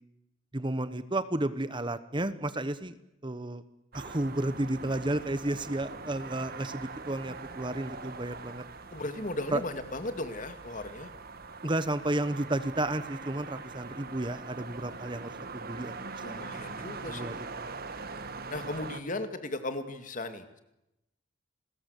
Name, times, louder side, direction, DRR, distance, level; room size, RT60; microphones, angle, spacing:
voice 1, 0.5-3.0 3.2-3.6 3.9-8.6 9.5-9.6 11.6-15.9 16.3-17.4, right 1 dB, 25° right, 13 dB, 1.1 m, -32 dB
sound 1, 3.9-19.0, right 4 dB, 50° right, 1.7 m, -43 dB
voice 2, 8.9-11.1 16.2-17.3 18.5-20.6, left 2 dB, 40° left, 9 dB, 2.5 m, -36 dB
29.5 x 21.0 x 8.3 m, 0.88 s
head